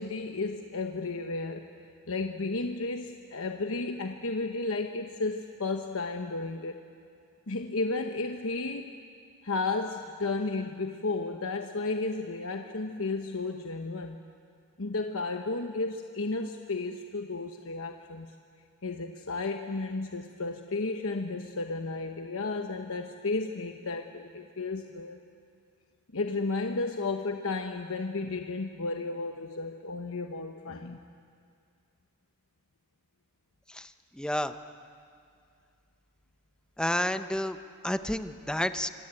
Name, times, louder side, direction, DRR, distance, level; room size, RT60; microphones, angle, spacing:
voice 1, 0.0-1.7 2.1-6.8 7.5-8.9 9.4-14.2 14.8-18.3 18.8-25.2 26.1-31.0, left 3 dB, 65° left, 4 dB, 1.1 m, -33 dB
voice 2, 33.7-34.5 36.8-37.6 37.8-38.9, left 1 dB, 5° left, 9 dB, 0.8 m, -30 dB
26.0 x 23.0 x 9.0 m, 2.3 s
head